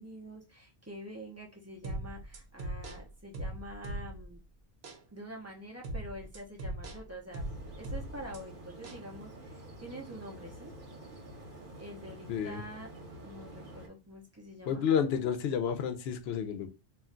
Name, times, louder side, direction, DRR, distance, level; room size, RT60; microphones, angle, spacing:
voice 1, 0.0-4.4 5.1-7.4 7.8-10.7 11.8-12.9 13.2-14.8, equal, 20° right, -1 dB, 0.5 m, -46 dB
sound 1, 1.8-4.4 4.8-5.0 5.8-8.4 8.8-9.0, right 1 dB, 75° right, 0.9 m, -40 dB
sound 2, 7.3-13.9, right 1 dB, 50° right, 1.1 m, -49 dB
voice 2, 12.3-12.6 14.7-16.7, left 7 dB, 75° left, 9 dB, 0.8 m, -30 dB
2.4 x 2.2 x 3.6 m, 0.29 s
omnidirectional pair, 1.1 m